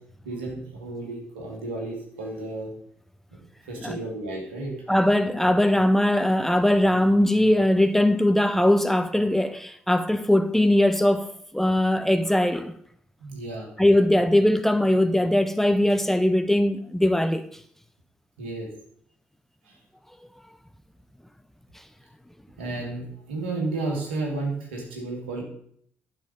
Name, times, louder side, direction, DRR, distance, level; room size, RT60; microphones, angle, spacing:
voice 1, 0.2-2.7 3.7-4.8 13.2-13.7 18.4-18.7 19.6-19.8 22.6-25.4, right 2 dB, 75° right, 2.4 m, -32 dB
voice 2, 4.9-12.7 13.8-17.5, left 1 dB, 5° left, 0.6 m, -21 dB
11.5 x 5.7 x 5.3 m
figure-of-eight pair, 45°, 6 cm